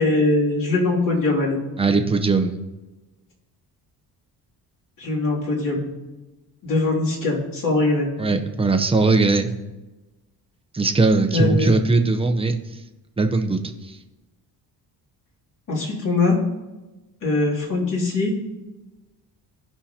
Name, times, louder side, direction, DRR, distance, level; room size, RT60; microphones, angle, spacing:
voice 1, 0.0-1.6 5.0-5.9 6.6-8.1 11.3-11.7 15.7-16.4 17.2-18.3, left 3 dB, 55° left, -4 dB, 2.9 m, -21 dB
voice 2, 1.8-2.6 8.2-9.5 10.7-12.8 13.2-14.0, right 3 dB, 15° right, 5 dB, 0.7 m, -20 dB
16.0 x 5.7 x 2.9 m, 1.1 s
cardioid pair, 120°, 38 cm